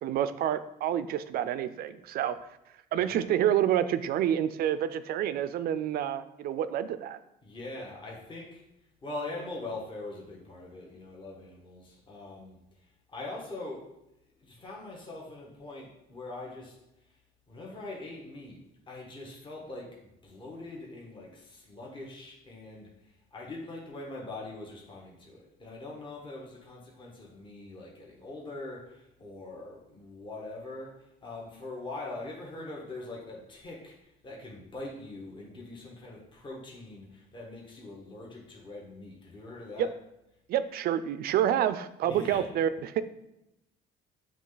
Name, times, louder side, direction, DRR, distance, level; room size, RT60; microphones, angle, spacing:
voice 1, 0.0-2.4 2.9-7.2 39.8-39.9 40.5-43.0, right 10 dB, 65° right, 13 dB, 0.4 m, -28 dB
voice 2, 7.4-8.6 9.0-12.6 13.1-13.8 14.4-16.7 17.5-18.6 18.9-19.9 20.2-22.9 23.3-31.0 31.2-33.9 34.2-39.9 42.0-42.4, left 2 dB, 30° left, -2 dB, 1.3 m, -42 dB
7.5 x 3.3 x 3.9 m, 0.85 s
cardioid pair, 110°, 17 cm